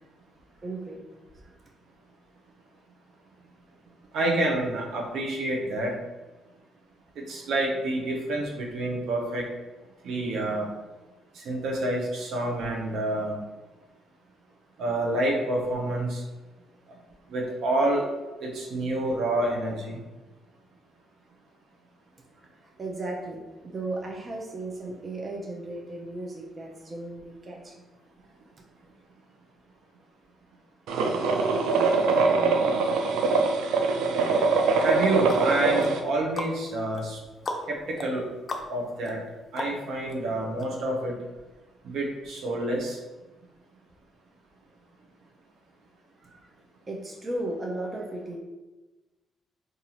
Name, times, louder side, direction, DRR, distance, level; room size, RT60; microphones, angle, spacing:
voice 1, 0.6-1.0 22.8-27.7 46.2-46.5 46.9-48.4, right 2 dB, 35° right, 0 dB, 0.7 m, -35 dB
voice 2, 4.1-5.9 7.3-9.4 10.0-10.7 11.4-13.4 14.8-16.2 17.3-18.1 18.4-20.0 34.8-37.2 37.7-38.2 38.7-39.2 39.5-41.1 41.8-43.0, right 1 dB, 70° right, -1 dB, 0.8 m, -28 dB
sound 1, 30.9-36.0, right 4 dB, 85° right, 0.4 m, -23 dB
sound 2, 34.8-40.1 40.6-40.7, left 2 dB, 40° left, 0.5 m, -38 dB
3.9 x 2.6 x 2.9 m, 1.1 s
cardioid pair, 90°, 0 cm